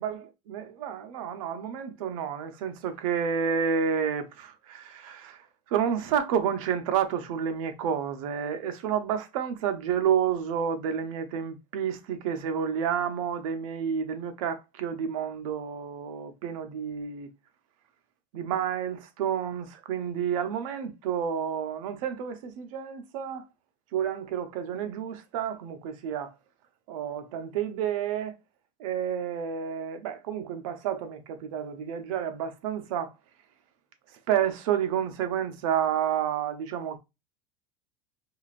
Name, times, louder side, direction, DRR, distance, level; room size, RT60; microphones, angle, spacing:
voice 1, 0.0-17.3 18.3-23.5 23.9-26.3 26.9-28.4 28.8-33.1 34.1-37.0, right 8 dB, 75° right, 0.8 m, -30 dB
4.8 x 2.5 x 2.5 m
supercardioid pair, 145°, 18 cm